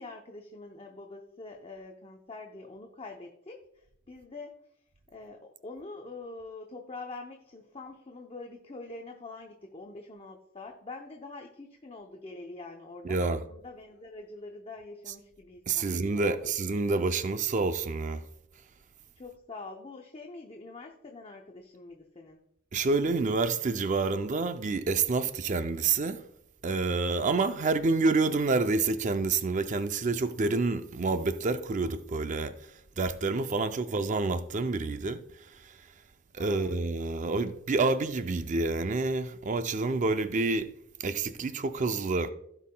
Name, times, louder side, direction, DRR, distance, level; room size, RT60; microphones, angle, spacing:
voice 1, 0.0-4.5 5.1-16.5 19.1-22.4 33.5-34.0 36.4-36.8, left 3 dB, 30° left, 0.6 m, -45 dB
voice 2, 13.0-13.4 15.7-18.2 22.7-26.2 26.6-32.6 33.0-35.2 35.6-35.7 36.3-40.7 41.0-42.3, right 3 dB, 35° right, 0.4 m, -28 dB
16.5 x 5.5 x 2.2 m
head